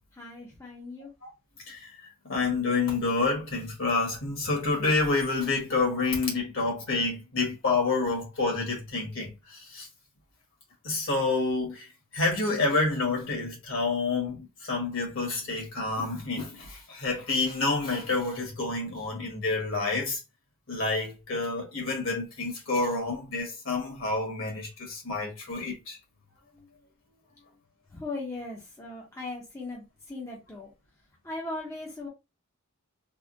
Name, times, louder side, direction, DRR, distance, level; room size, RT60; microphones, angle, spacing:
voice 1, 0.1-1.1 27.9-30.7 31.2-32.1, left 2 dB, 15° left, 0.6 m, -38 dB
voice 2, 2.2-9.9 10.8-11.9 12.1-20.2 20.7-26.0, left 3 dB, 60° left, 1.4 m, -28 dB
3.5 x 2.1 x 2.6 m
head